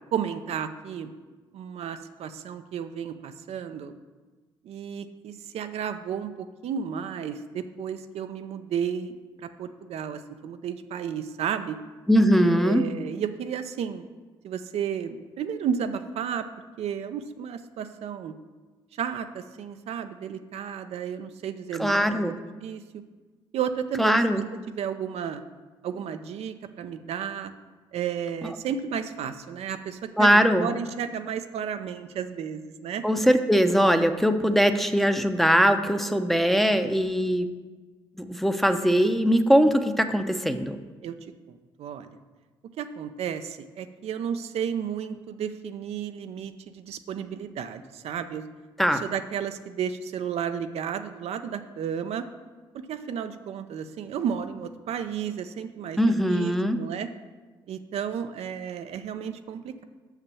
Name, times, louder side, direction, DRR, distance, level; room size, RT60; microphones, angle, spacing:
voice 1, 0.1-1.1 1.5-3.9 4.6-9.1 9.6-11.8 12.4-14.0 14.4-16.5 16.8-18.3 19.0-22.3 22.6-22.8 23.5-24.2 24.7-25.4 25.8-27.5 27.9-33.0 41.0-41.2 41.8-42.2 42.8-48.4 48.9-52.3 52.7-57.1 57.7-59.8, right 8 dB, 65° right, 8 dB, 0.5 m, -33 dB
voice 2, 12.1-12.8 21.8-22.4 24.0-24.4 30.2-30.7 33.0-37.5 38.2-40.8 48.8-49.0 56.0-56.8, equal, ahead, 7 dB, 0.8 m, -21 dB
6.0 x 5.7 x 6.9 m, 1.3 s
hypercardioid pair, 50°, 11 cm